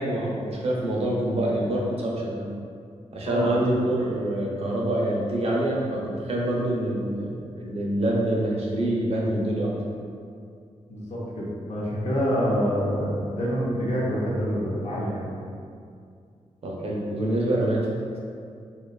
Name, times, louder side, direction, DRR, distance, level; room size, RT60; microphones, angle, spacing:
voice 1, 0.0-2.5 3.1-9.7 16.6-17.9, right 1 dB, 55° right, -3 dB, 0.5 m, -26 dB
voice 2, 3.3-3.6 10.9-15.3, equal, 70° left, -6 dB, 0.7 m, -26 dB
2.7 x 2.3 x 2.2 m, 2.3 s
cardioid pair, 65°, 12 cm